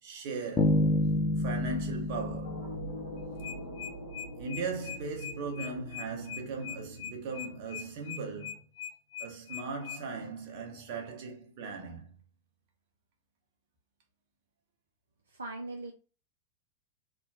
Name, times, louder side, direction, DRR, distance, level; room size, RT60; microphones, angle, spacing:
voice 1, 0.0-0.8 1.4-2.7 4.4-8.6 9.2-12.2, right 4 dB, 45° right, 1.0 m, -38 dB
sound 1, 0.6-3.6, left 2 dB, 15° left, 0.7 m, -29 dB
sound 2, 2.4-8.3, equal, 70° left, 1.0 m, -44 dB
sound 3, 3.2-10.0, left 8 dB, 50° left, 0.6 m, -41 dB
voice 2, 15.3-15.9, right 2 dB, 75° right, 0.4 m, -39 dB
3.5 x 2.1 x 2.5 m
figure-of-eight pair, 90°, 0 cm